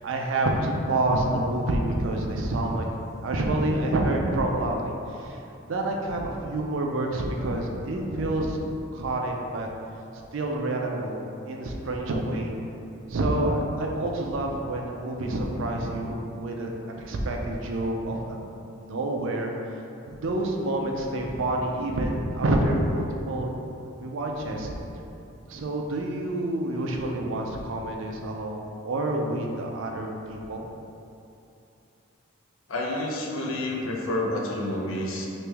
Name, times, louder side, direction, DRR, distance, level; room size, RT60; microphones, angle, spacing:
voice 1, 0.0-2.8 3.2-5.4 5.7-8.6 8.9-9.7 10.3-12.5 13.1-18.4 18.8-19.8 20.1-23.5 24.0-24.7 25.5-30.7, right 1 dB, 75° right, 1 dB, 0.4 m, -28 dB
voice 2, 32.7-35.3, left 1 dB, 80° left, -1 dB, 0.5 m, -29 dB
3.1 x 2.9 x 3.4 m, 2.7 s
head